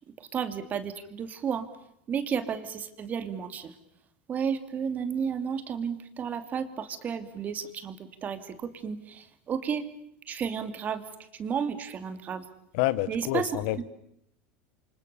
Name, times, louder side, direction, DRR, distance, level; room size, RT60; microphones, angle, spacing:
voice 1, 0.2-1.7 2.1-3.7 4.3-9.9 10.3-11.0 11.3-12.4 13.1-13.5, right 7 dB, 35° right, 10 dB, 2.7 m, -32 dB
voice 2, 12.7-13.8, left 17 dB, 70° left, 17 dB, 1.1 m, -28 dB
29.5 x 25.0 x 7.0 m, 0.77 s
supercardioid pair, 110°, 5 cm